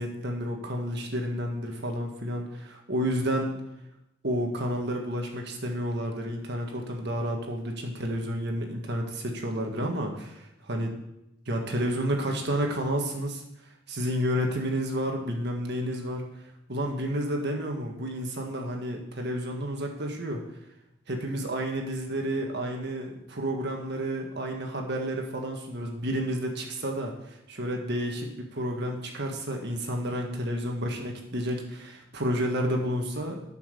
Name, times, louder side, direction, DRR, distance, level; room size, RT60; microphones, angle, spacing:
voice 1, 0.0-3.6 4.2-10.9 11.5-13.4 13.9-16.2 16.7-20.4 21.1-33.4, equal, 55° right, 2 dB, 1.7 m, -30 dB
11.5 x 5.8 x 6.7 m, 0.87 s
head